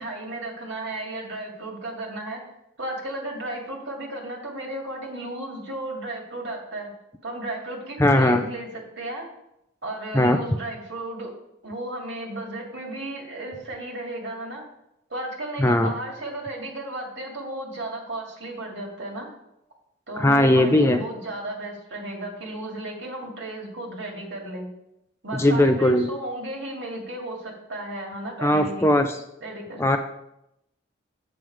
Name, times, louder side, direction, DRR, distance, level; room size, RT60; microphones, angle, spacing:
voice 1, 0.0-2.4 2.8-6.9 7.2-9.2 9.8-11.3 11.6-14.6 15.1-19.3 20.1-24.7 25.2-28.9 29.4-29.8, right 1 dB, 60° right, -1 dB, 2.2 m, -34 dB
voice 2, 8.0-8.4 10.1-10.4 15.6-15.9 20.2-21.0 25.3-26.1 28.4-29.2 29.8-30.0, left 1 dB, 15° left, 6 dB, 0.4 m, -19 dB
7.5 x 7.3 x 4.6 m, 0.83 s
head